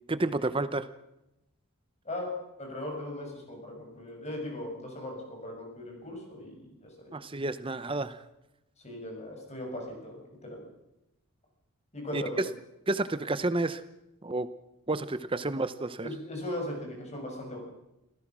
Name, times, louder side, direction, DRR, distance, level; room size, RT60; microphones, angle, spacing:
voice 1, 0.1-0.9 7.1-8.2 12.1-12.4 12.9-13.8 14.2-14.5 14.9-16.1, right 2 dB, 25° right, 13 dB, 0.7 m, -30 dB
voice 2, 2.0-7.2 8.8-10.6 11.9-12.4 16.0-17.6, left 1 dB, 30° left, 1 dB, 6.8 m, -38 dB
27.0 x 16.0 x 6.2 m, 0.90 s
head